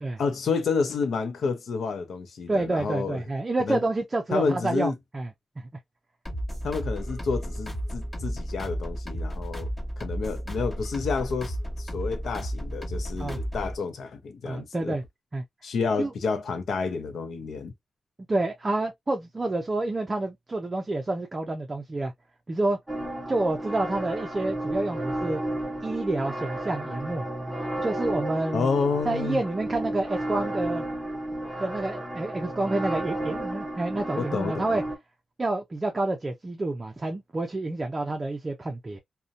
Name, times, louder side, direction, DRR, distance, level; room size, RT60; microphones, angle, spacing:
voice 1, 0.2-3.2 3.6-3.8 4.3-4.9 6.6-9.7 10.0-15.0 15.6-17.7 28.5-29.4 34.2-34.8, left 5 dB, 80° left, 0.6 m, -29 dB
voice 2, 2.5-5.3 5.6-5.7 13.2-13.4 14.4-15.0 15.3-15.4 16.0-16.1 18.3-22.1 22.5-22.8 23.3-25.4 25.8-27.3 27.8-28.7 29.1-30.8 31.6-34.8 35.4-39.0, right 2 dB, 25° right, 0.4 m, -28 dB
sound 1, 6.2-13.8, equal, 25° left, 1.4 m, -33 dB
sound 2, 22.9-35.0, right 1 dB, 10° right, 0.8 m, -32 dB
2.6 x 2.1 x 2.4 m
wide cardioid pair, 120°, 0 cm